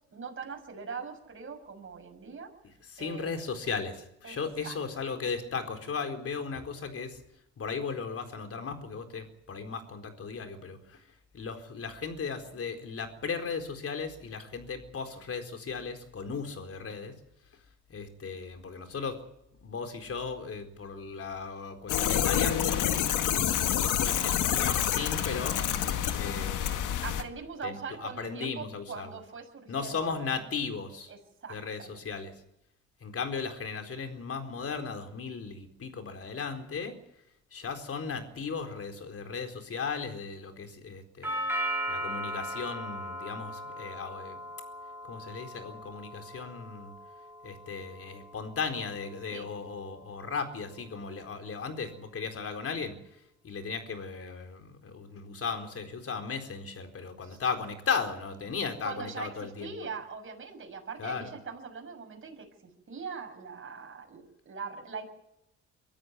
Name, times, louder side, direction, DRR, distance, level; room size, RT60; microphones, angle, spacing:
voice 1, 0.1-2.5 3.0-3.4 4.2-4.4 4.6-4.7 27.0-30.1 31.1-32.0 49.3-49.5 57.2-57.4 58.8-65.1, right 5 dB, 45° right, 3 dB, 6.8 m, -41 dB
voice 2, 2.9-7.2 7.6-11.0 11.3-17.1 17.9-19.2 19.6-22.9 23.6-25.6 26.1-26.9 27.6-29.1 29.7-31.1 31.5-32.3 33.0-37.0 37.5-41.4 41.9-44.4 45.1-46.9 47.4-59.8 61.0-61.3, left 5 dB, 50° left, 6 dB, 4.3 m, -36 dB
sound 1, 21.9-27.2, left 10 dB, 85° left, 1.9 m, -28 dB
Doorbell, 41.2-49.3, equal, 5° right, 4.6 m, -38 dB
24.0 x 13.5 x 9.8 m, 0.81 s
cardioid pair, 90°, 30 cm